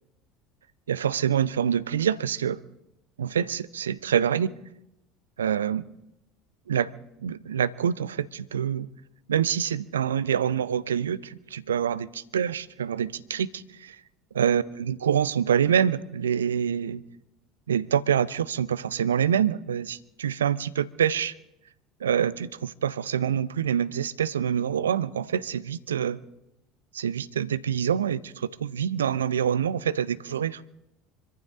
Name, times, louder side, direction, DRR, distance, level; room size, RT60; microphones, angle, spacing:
voice 1, 0.9-2.6 3.2-4.5 5.4-5.9 6.7-6.9 7.2-8.9 9.3-12.1 12.3-14.0 14.4-17.0 17.7-21.3 22.0-26.2 26.9-30.6, right 8 dB, 75° right, 0.5 m, -26 dB
25.5 x 14.5 x 3.8 m
figure-of-eight pair, 70°, 0 cm